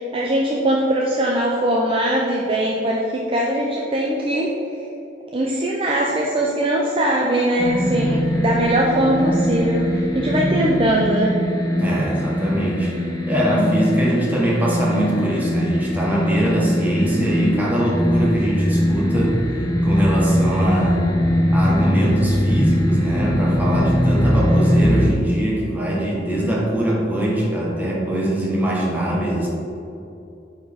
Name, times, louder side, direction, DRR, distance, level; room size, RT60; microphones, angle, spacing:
voice 1, 0.1-4.5 5.3-9.8 10.1-11.3, right 1 dB, 30° right, -2 dB, 0.6 m, -21 dB
sound 1, 7.6-25.1, equal, 20° left, 0.7 m, -21 dB
voice 2, 11.8-21.1 21.5-29.5, right 1 dB, 10° right, -5 dB, 1.4 m, -22 dB
8.9 x 4.4 x 3.6 m, 2.8 s
head